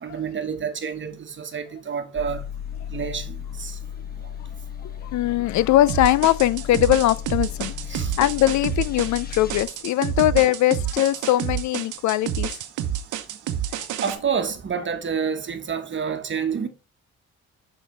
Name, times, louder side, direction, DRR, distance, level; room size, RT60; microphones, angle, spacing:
voice 1, 0.0-2.4 2.9-3.8 7.9-8.1 14.0-16.7, right 6 dB, 40° right, 1.3 m, -28 dB
sound 1, 2.2-9.7, left 9 dB, 30° left, 0.9 m, -35 dB
voice 2, 5.0-12.6 13.7-13.9, left 14 dB, 70° left, 0.5 m, -21 dB
sound 2, 5.9-14.2, right 10 dB, 80° right, 0.9 m, -29 dB
6.4 x 5.9 x 3.3 m
cardioid pair, 90°, 30 cm